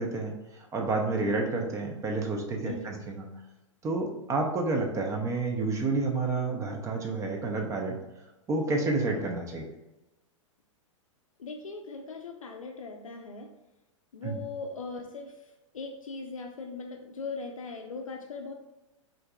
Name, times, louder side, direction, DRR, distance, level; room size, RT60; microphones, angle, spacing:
voice 1, 0.0-3.3 3.8-8.0 8.5-9.6 14.2-14.3, right 3 dB, 20° right, 1 dB, 0.5 m, -29 dB
voice 2, 2.6-3.0 11.4-13.5 14.1-18.5, left 4 dB, 85° left, 3 dB, 0.4 m, -39 dB
4.5 x 2.5 x 2.3 m, 1.0 s
hypercardioid pair, 105°, 17 cm